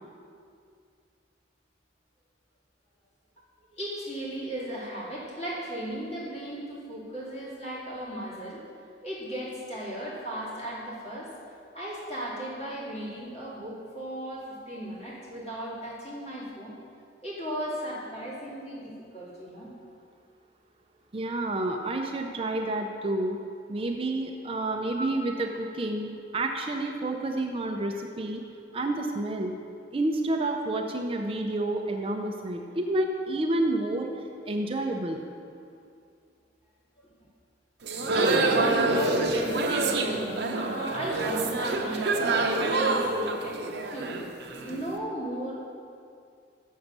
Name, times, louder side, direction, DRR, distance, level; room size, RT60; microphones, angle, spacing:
voice 1, 3.7-8.6 9.0-16.8 17.2-19.7 25.0-25.1 37.0-37.1 38.1-43.3 43.9-45.6, equal, 35° left, -6 dB, 2.3 m, -36 dB
voice 2, 21.1-23.4 23.7-28.4 28.7-29.6 29.9-35.2, right 2 dB, 30° right, 3 dB, 0.5 m, -29 dB
sound 1, 37.8-44.8, right 2 dB, 65° right, 0.8 m, -26 dB
7.1 x 6.5 x 6.7 m, 2.3 s
head